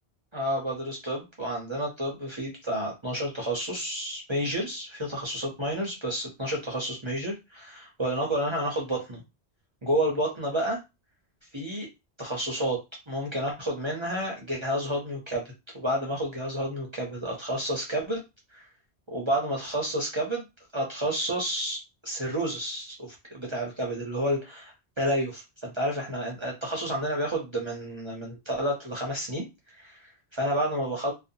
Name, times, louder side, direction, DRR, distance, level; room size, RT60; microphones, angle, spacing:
voice 1, 0.3-9.2 9.8-10.8 11.5-11.9 12.2-12.8 13.1-15.4 15.7-18.2 18.5-18.6 19.1-20.4 20.7-30.1 30.4-31.1, right 1 dB, 35° right, -2 dB, 0.5 m, -30 dB
2.5 x 2.1 x 2.6 m, 0.24 s
omnidirectional pair, 1.1 m